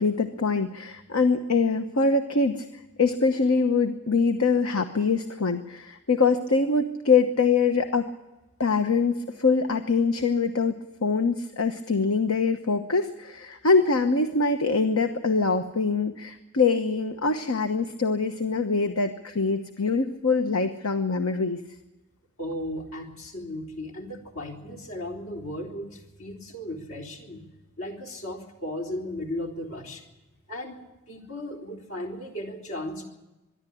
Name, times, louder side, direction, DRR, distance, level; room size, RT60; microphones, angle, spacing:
voice 1, 0.0-8.1 8.6-21.6, left 4 dB, 90° left, 7 dB, 1.1 m, -24 dB
voice 2, 22.4-27.4 27.8-30.0 30.5-33.0, left 1 dB, 70° left, 1 dB, 3.7 m, -36 dB
24.5 x 11.5 x 10.0 m, 1.1 s
head